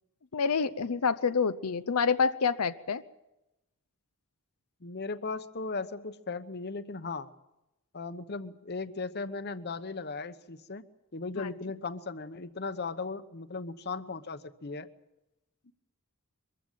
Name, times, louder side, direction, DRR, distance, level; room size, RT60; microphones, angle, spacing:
voice 1, 0.3-3.0 11.4-11.5, left 5 dB, 85° left, 10 dB, 0.7 m, -27 dB
voice 2, 4.8-7.3 7.9-10.8 11.1-14.9 15.6-15.7, left 4 dB, 50° left, 11 dB, 1.0 m, -37 dB
23.0 x 15.0 x 9.1 m, 0.94 s
head